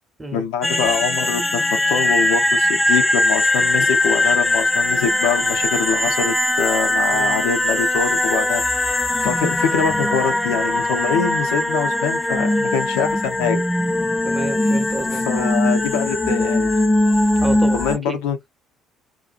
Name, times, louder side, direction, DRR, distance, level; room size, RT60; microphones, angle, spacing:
voice 1, 0.3-13.6 15.0-16.7 17.7-18.4, left 7 dB, 70° left, 0.5 m, -24 dB
sound 1, 0.6-18.0, left 1 dB, 15° left, 0.4 m, -20 dB
voice 2, 14.2-15.5 17.4-18.2, right 2 dB, 15° right, 0.8 m, -30 dB
2.5 x 2.3 x 2.3 m
figure-of-eight pair, 50°, 0 cm